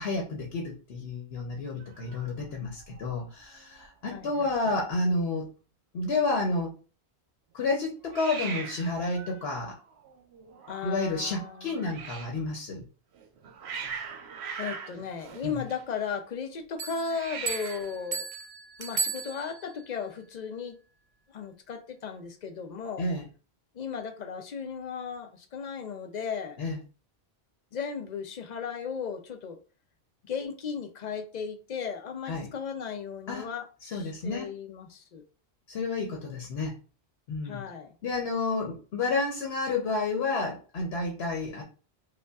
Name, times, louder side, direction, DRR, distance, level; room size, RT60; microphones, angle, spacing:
voice 1, 0.0-5.5 5.9-6.7 7.5-9.8 10.8-12.8 15.4-15.6 23.0-23.3 26.6-26.8 32.3-32.5 33.3-33.5 33.8-34.5 35.7-36.7 37.3-37.6 38.0-41.6, left 3 dB, 75° left, 1.0 m, -30 dB
Hiss, 1.8-3.1 3.4-3.9 4.1-4.2 4.4-5.1 8.1-12.4 13.1-16.1 17.0-18.0, right 6 dB, 85° right, 0.9 m, -42 dB
voice 2, 4.1-4.5 10.7-11.8 14.6-18.3 18.8-20.8 21.3-23.1 23.7-26.6 27.7-29.6 30.2-35.2 37.4-37.9, left 6 dB, 55° left, 0.6 m, -36 dB
Bell, 16.8-19.9, right 5 dB, 50° right, 0.7 m, -35 dB
5.1 x 2.3 x 2.3 m
omnidirectional pair, 1.1 m